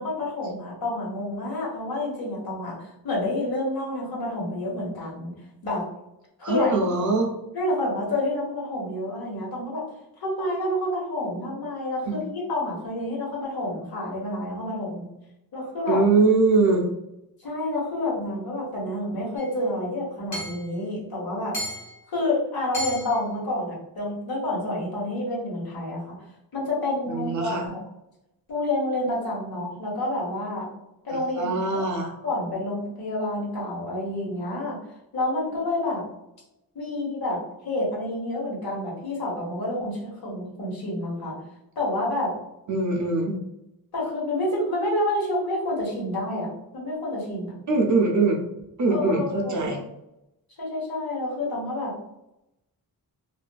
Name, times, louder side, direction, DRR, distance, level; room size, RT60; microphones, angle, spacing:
voice 1, 0.0-5.3 5.6-5.8 6.5-6.7 7.5-9.8 10.2-15.1 15.5-16.0 17.4-21.5 22.1-26.1 26.5-27.8 28.5-30.7 31.0-31.9 32.2-34.8 35.1-36.0 36.7-37.4 37.6-41.4 41.8-42.3 43.9-47.9 48.9-49.8 50.6-52.0, left 1 dB, 70° left, -4 dB, 1.1 m, -29 dB
voice 2, 6.4-7.3 12.1-12.2 15.9-16.8 27.1-27.7 31.4-32.1 42.7-43.4 47.7-48.4 48.8-49.8, right 3 dB, 50° right, 0 dB, 0.5 m, -22 dB
Hammer / Chink clink, 19.4-19.5 20.3-20.7 21.5-22.0 22.7-23.2, equal, 50° left, 1.2 m, -33 dB
2.7 x 2.5 x 2.2 m, 0.87 s
wide cardioid pair, 150°, 38 cm